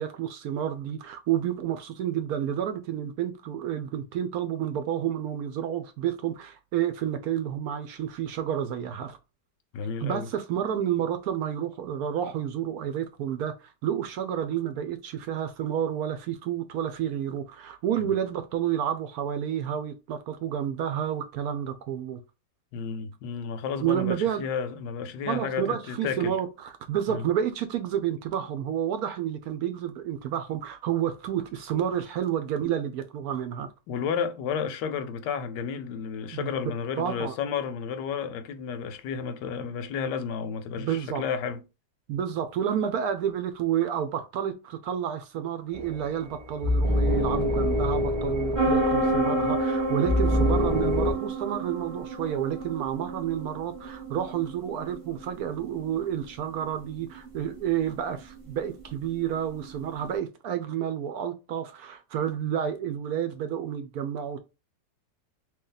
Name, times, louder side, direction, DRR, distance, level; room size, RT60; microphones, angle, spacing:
voice 1, 0.0-9.2 10.0-22.2 23.8-24.5 25.3-33.7 36.3-36.5 37.0-37.3 40.8-41.2 42.1-64.4, right 9 dB, 70° right, 1.0 m, -30 dB
voice 2, 9.7-10.3 18.0-18.1 22.7-26.4 27.1-27.3 33.9-41.6, left 6 dB, 80° left, 1.2 m, -32 dB
sound 1, 45.7-51.1, left 1 dB, 5° right, 0.9 m, -26 dB
sound 2, 48.5-60.1, right 2 dB, 35° right, 0.5 m, -31 dB
3.0 x 2.8 x 3.8 m
omnidirectional pair, 1.8 m